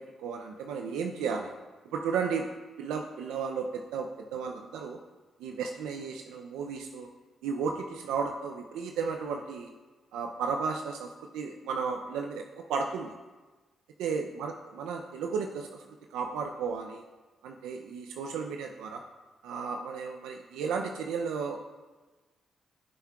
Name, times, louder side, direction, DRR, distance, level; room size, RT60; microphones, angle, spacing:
voice 1, 0.0-1.5 1.9-2.5 2.8-5.0 5.4-7.1 7.4-9.7 10.1-13.1 14.0-15.8 16.1-17.0 17.4-19.0 19.4-21.6, right 5 dB, 85° right, 3 dB, 0.4 m, -34 dB
15.5 x 5.6 x 2.3 m, 1.3 s
supercardioid pair, 55°, 0 cm